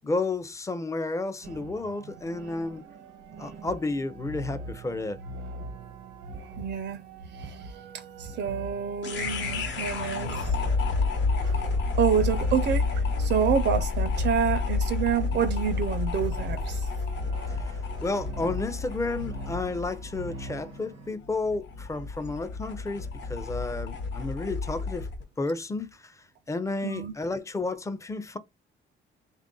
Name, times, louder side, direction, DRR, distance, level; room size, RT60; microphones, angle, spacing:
voice 1, 0.0-2.8 3.4-5.2 17.5-25.1 25.4-26.1 26.5-28.4, left 3 dB, 15° left, 0.5 m, -32 dB
sound 1, 1.4-21.1, right 2 dB, 90° right, 0.9 m, -42 dB
voice 2, 6.6-7.0 7.4-7.6 7.9-10.5 11.4-11.6 11.9-16.9 26.8-27.1, right 7 dB, 60° right, 0.5 m, -28 dB
sound 2, 9.0-25.2, left 4 dB, 65° left, 1.0 m, -30 dB
3.4 x 2.5 x 3.7 m
cardioid pair, 90°, 20 cm